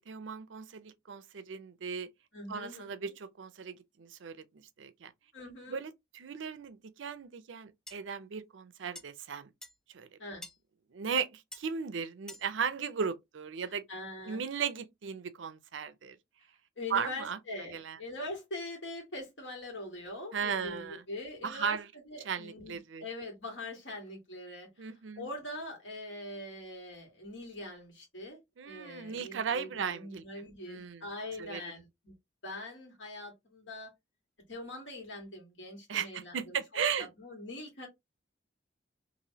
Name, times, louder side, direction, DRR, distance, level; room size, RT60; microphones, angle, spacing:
voice 1, 0.0-2.1 2.5-4.4 4.8-5.1 5.7-9.5 9.9-10.1 10.9-13.8 14.3-16.2 16.9-17.4 17.7-18.0 20.3-21.0 21.4-21.9 22.2-23.0 24.8-25.3 28.6-30.2 30.7-31.0 31.4-31.6 35.9-37.1, right 6 dB, 90° right, 0.5 m, -36 dB
voice 2, 2.3-3.1 5.3-5.8 10.2-10.4 13.9-14.4 16.8-21.8 22.1-28.4 28.7-32.1 32.4-33.9 34.5-36.6 37.0-37.9, left 2 dB, 80° left, 1.8 m, -43 dB
sound 1, 7.9-8.0 9.0-9.1 9.6-9.8 10.4-10.6 11.5-11.7 12.3-12.5, left 1 dB, 5° left, 0.3 m, -46 dB
3.0 x 2.6 x 2.7 m
head